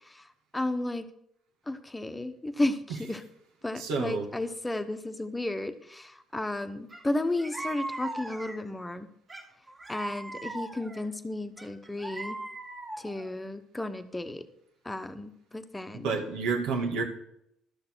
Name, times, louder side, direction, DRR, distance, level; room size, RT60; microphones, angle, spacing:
voice 1, 0.5-1.0 1.7-3.2 3.6-9.1 9.9-12.4 13.0-14.4 14.8-16.1, left 2 dB, 15° left, 9 dB, 1.1 m, -33 dB
voice 2, 3.8-4.3 15.9-17.0, right 4 dB, 85° right, 3 dB, 1.9 m, -29 dB
sound 1, 6.9-7.0 7.4-8.7 9.3-11.1 11.6-13.3, right 2 dB, 30° right, 2.2 m, -39 dB
12.5 x 6.7 x 6.3 m, 0.76 s
supercardioid pair, 80°, 0 cm